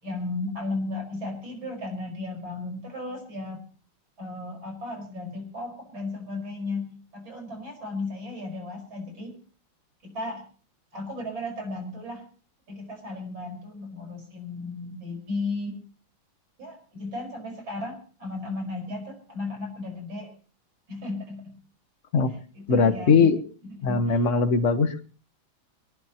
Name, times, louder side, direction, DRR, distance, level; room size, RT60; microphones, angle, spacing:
voice 1, 0.0-3.6 4.2-9.3 10.0-10.4 10.9-12.2 12.7-15.7 16.6-20.3 20.9-21.5 22.5-23.3 23.6-24.2, left 2 dB, 75° right, 3 dB, 5.9 m, -35 dB
voice 2, 22.7-23.4 23.8-25.0, left 5 dB, 40° left, 9 dB, 1.5 m, -20 dB
22.5 x 18.5 x 3.0 m, 0.39 s
omnidirectional pair, 2.2 m